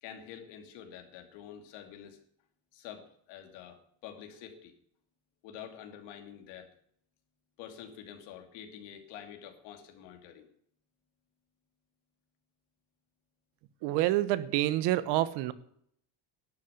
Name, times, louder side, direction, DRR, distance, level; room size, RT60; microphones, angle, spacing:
voice 1, 0.0-2.2 2.7-4.7 5.4-6.7 7.6-10.5, left 9 dB, 90° left, 2.8 m, -47 dB
voice 2, 13.8-15.5, right 15 dB, 80° right, 1.1 m, -27 dB
12.0 x 6.8 x 9.5 m
cardioid pair, 165°, 41 cm